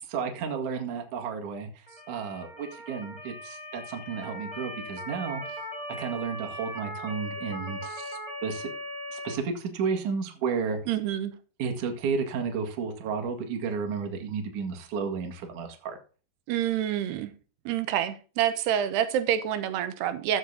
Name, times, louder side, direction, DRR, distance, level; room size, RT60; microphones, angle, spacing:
voice 1, 0.1-1.7 2.1-5.4 6.0-8.7 9.1-10.8 11.6-16.0, right 5 dB, 55° right, 2.9 m, -32 dB
Motor vehicle (road) / Siren, 1.9-9.3, equal, 10° left, 2.7 m, -39 dB
voice 2, 10.9-11.3 16.5-17.3 17.7-20.4, right 10 dB, 80° right, 3.0 m, -27 dB
14.5 x 6.6 x 4.0 m
omnidirectional pair, 4.8 m